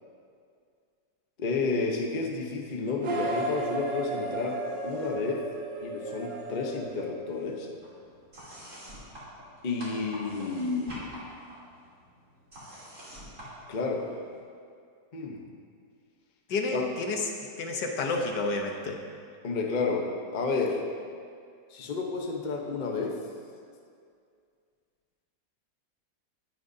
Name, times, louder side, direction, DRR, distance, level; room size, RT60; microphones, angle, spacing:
voice 1, 1.4-5.4 5.8-7.7 9.6-11.2 13.7-14.1 15.1-15.4 16.7-16.9 19.4-20.8 21.7-23.1, left 4 dB, 35° left, 1 dB, 0.8 m, -31 dB
sound 1, 3.0-7.8, right 2 dB, 75° right, 1.8 m, -34 dB
sound 2, 4.5-5.3 5.5-6.6 6.8-14.4, equal, 45° right, 3.8 m, -47 dB
voice 2, 16.5-17.2 17.6-19.0, left 3 dB, 70° left, 2 dB, 1.6 m, -30 dB
18.5 x 9.1 x 2.7 m, 2.3 s
omnidirectional pair, 1.9 m